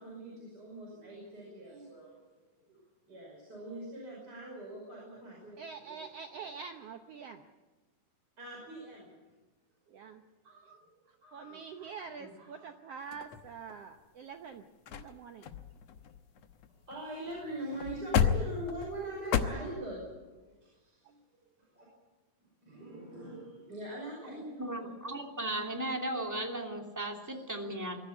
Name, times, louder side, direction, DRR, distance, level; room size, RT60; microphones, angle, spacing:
voice 1, 0.0-2.2 2.7-6.0 8.4-9.1 10.8-10.9 11.2-11.9 12.2-12.7 16.9-21.2 21.6-21.9 22.6-24.8 27.2-27.4, right 1 dB, 30° right, -4 dB, 6.0 m, -43 dB
voice 2, 4.8-5.2 5.6-7.5 9.9-10.8 11.1-14.6 14.9-15.5, right 6 dB, 70° right, 6 dB, 1.5 m, -46 dB
sound 1, 13.1-14.0 14.5-14.6 14.9-15.1 15.4-17.0 17.3-17.4 17.7-19.4, left 8 dB, 60° left, 1.9 m, -32 dB
voice 3, 24.3-28.0, right 1 dB, 5° right, 1 dB, 2.3 m, -36 dB
22.5 x 14.5 x 9.9 m, 1.2 s
omnidirectional pair, 3.9 m